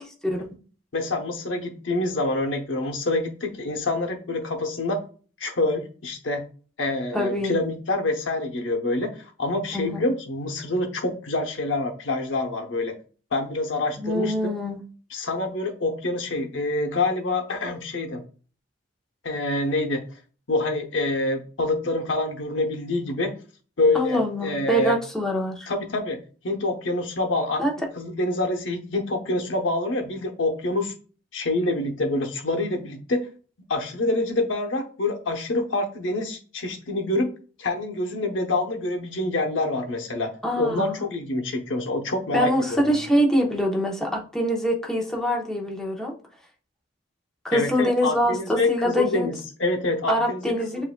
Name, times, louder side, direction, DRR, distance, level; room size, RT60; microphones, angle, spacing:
voice 1, 0.9-5.0 5.4-6.4 6.8-12.9 13.3-14.5 15.1-18.2 19.2-20.0 20.5-23.3 23.8-25.0 25.7-26.2 26.4-27.6 28.0-30.9 31.3-33.3 33.7-37.3 37.6-40.3 40.6-42.8 47.5-50.5, left 2 dB, 75° left, 3 dB, 0.8 m, -26 dB
voice 2, 7.1-7.6 9.7-10.0 14.0-14.8 23.9-25.7 27.6-27.7 40.4-41.0 42.3-46.1 47.4-49.3 50.1-50.8, equal, 5° left, -1 dB, 0.9 m, -24 dB
7.4 x 2.6 x 2.2 m, 0.38 s
head